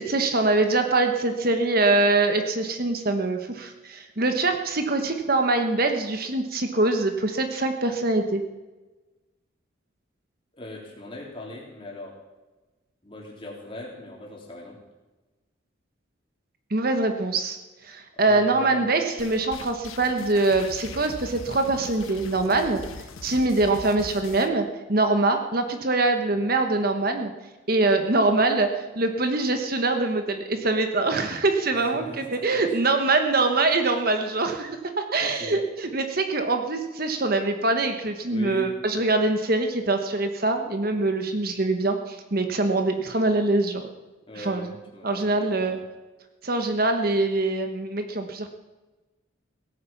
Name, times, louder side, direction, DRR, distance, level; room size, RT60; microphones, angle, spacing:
voice 1, 0.0-8.4 16.7-17.6 17.8-27.3 27.7-43.9 44.4-44.8 45.0-45.8 46.4-48.5, right 2 dB, 45° right, 6 dB, 1.2 m, -24 dB
voice 2, 10.5-12.2 13.0-14.8 18.2-18.9 31.9-32.6 35.2-35.6 38.3-38.8 44.3-45.8, left 1 dB, 25° left, -1 dB, 3.5 m, -40 dB
sound 1, 19.2-24.5, left 3 dB, 90° left, 1.3 m, -41 dB
17.0 x 9.5 x 7.2 m, 1.2 s
head